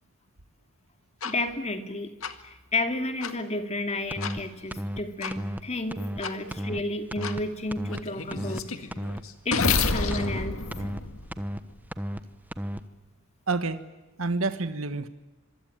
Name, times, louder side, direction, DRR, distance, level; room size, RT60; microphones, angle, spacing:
sound 1, 1.2-1.3 2.2-2.3 3.2-3.3 4.2-4.3 5.2-5.3 6.2-6.3 7.2-7.3 7.9-11.8, left 4 dB, 75° left, 2.0 m, -29 dB
voice 1, 1.2-2.1 2.4-8.7 9.4-10.6, left 2 dB, 30° left, 7 dB, 2.6 m, -32 dB
sound 2, 4.1-4.4 4.7-5.0 5.3-5.6 5.9-6.2 6.5-6.8 7.1-7.4 7.7-8.0 8.3-8.6 8.9-9.2 9.5-9.8 10.1-10.4 10.7-11.0 11.3-11.6 11.9-12.2 12.5-12.8, equal, 10° right, 1.1 m, -33 dB
voice 2, 13.5-13.8 14.2-15.1, right 3 dB, 75° right, 10 dB, 1.5 m, -29 dB
26.0 x 24.0 x 9.2 m, 1.1 s
head